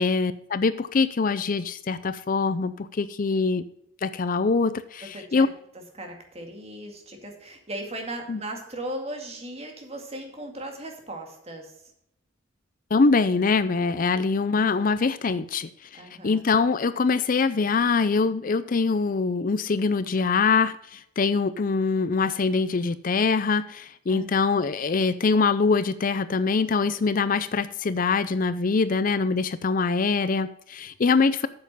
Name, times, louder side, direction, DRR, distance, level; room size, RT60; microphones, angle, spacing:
voice 1, 0.0-3.7 4.0-5.5 8.3-8.4 12.9-31.5, left 4 dB, 45° left, 14 dB, 0.5 m, -24 dB
voice 2, 5.1-5.5 5.9-11.9 15.9-16.4 24.1-24.3, right 1 dB, 35° right, 3 dB, 2.2 m, -37 dB
8.6 x 7.3 x 5.4 m, 0.75 s
head